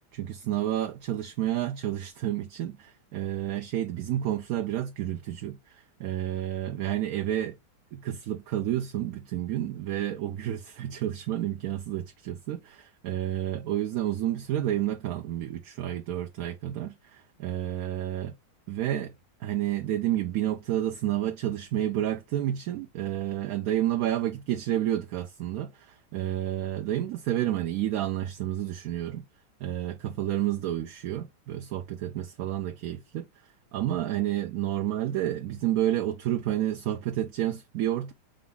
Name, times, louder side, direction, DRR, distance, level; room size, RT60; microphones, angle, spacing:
voice 1, 0.1-7.6 7.9-18.3 18.7-19.1 19.4-29.2 29.6-33.3 33.7-38.1, right 12 dB, 70° right, 0.9 m, -30 dB
5.1 x 2.3 x 3.6 m
omnidirectional pair, 1.8 m